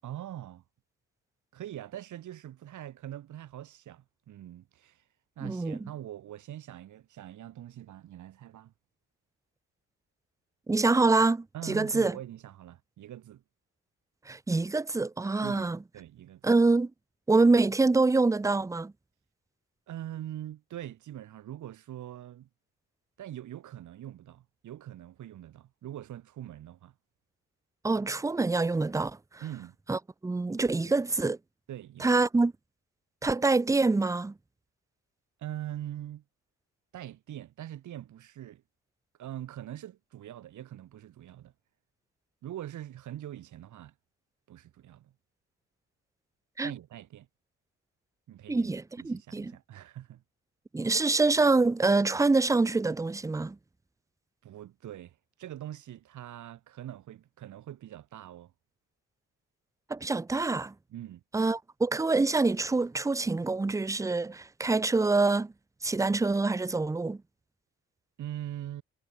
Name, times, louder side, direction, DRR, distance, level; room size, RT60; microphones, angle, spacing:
voice 1, 0.0-0.6 1.5-5.0 5.4-8.7 11.5-13.4 15.4-16.4 19.9-22.5 23.2-26.9 29.4-29.8 30.8-30.9 31.7-32.2 35.4-36.2 36.9-38.6 39.2-41.5 42.4-43.9 44.5-45.1 46.6-47.3 48.3-48.7 49.0-50.2 54.4-58.5 60.9-61.2 68.2-68.8, right 12 dB, 75° right, 7.3 m, -43 dB
voice 2, 5.4-5.8 10.7-12.2 14.3-15.8 16.4-16.9 17.3-18.9 27.8-29.2 29.9-31.4 32.0-32.5 33.2-34.3 46.6-46.7 48.5-49.5 50.7-53.6 59.9-60.7 61.3-65.5 65.8-67.2, right 3 dB, 10° right, 0.6 m, -25 dB
cardioid pair, 90°, 30 cm